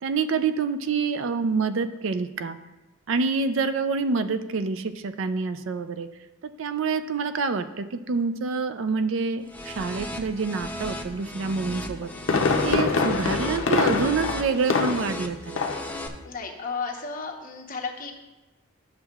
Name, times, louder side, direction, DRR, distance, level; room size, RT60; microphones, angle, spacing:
voice 1, 0.0-2.6 3.1-6.1 6.6-12.1 12.6-15.7, right 4 dB, 70° right, 10 dB, 0.4 m, -27 dB
sound 1, 9.5-16.1, left 1 dB, 10° left, 0.5 m, -36 dB
Fireworks, 11.8-15.2 15.6-15.9 16.3-16.4, left 4 dB, 75° left, 0.6 m, -24 dB
voice 2, 16.3-18.1, left 4 dB, 40° left, 2 dB, 0.9 m, -33 dB
11.0 x 6.6 x 2.3 m, 1.1 s
head